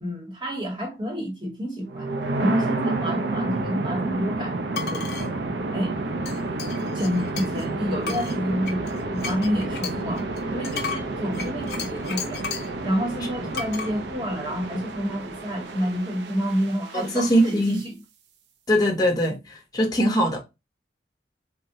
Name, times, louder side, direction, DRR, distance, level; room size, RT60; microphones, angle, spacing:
voice 1, 0.0-2.1 2.4-5.3 5.7-6.0 6.9-8.8 9.1-12.5 12.8-18.0, equal, 25° right, 0.9 m, -29 dB
sound 1, 1.9-17.8, right 2 dB, 75° right, 0.5 m, -30 dB
sound 2, 4.7-5.3 6.3-7.7 8.0-12.8 13.5-13.9, left 6 dB, 65° left, 0.6 m, -34 dB
voice 2, 16.9-17.8 18.7-19.4 19.7-20.4, equal, 20° left, 0.6 m, -21 dB
3.5 x 2.1 x 2.7 m
head